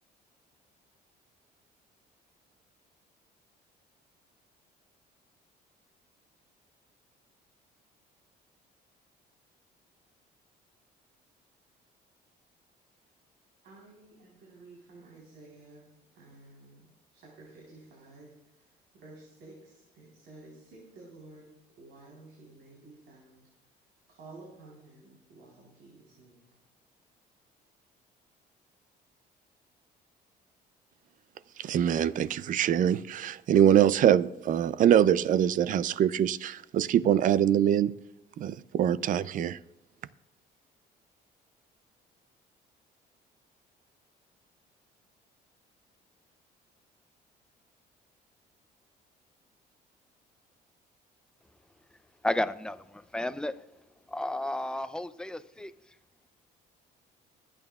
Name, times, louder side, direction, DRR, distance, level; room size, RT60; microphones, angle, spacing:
voice 1, 13.6-21.5 21.8-23.8 24.1-26.6, right 2 dB, 80° right, 4.0 m, -53 dB
voice 2, 31.6-37.9 38.4-39.6, right 10 dB, 50° right, 0.5 m, -24 dB
voice 3, 52.2-53.5 54.1-55.7, left 1 dB, 5° left, 0.5 m, -32 dB
23.0 x 9.0 x 2.4 m
cardioid pair, 110°, 17 cm